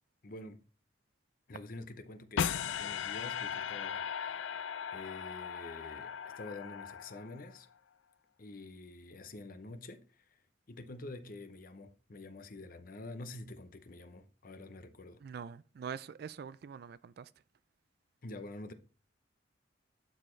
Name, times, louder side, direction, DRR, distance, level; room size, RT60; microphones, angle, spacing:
voice 1, 0.2-0.6 1.5-7.7 8.4-10.4 10.7-15.2 18.2-18.7, left 2 dB, 50° left, 0.7 m, -47 dB
sound 1, 2.4-7.6, left 7 dB, 80° left, 0.4 m, -38 dB
voice 2, 15.2-17.3, right 7 dB, 55° right, 0.3 m, -44 dB
11.5 x 4.4 x 3.2 m
head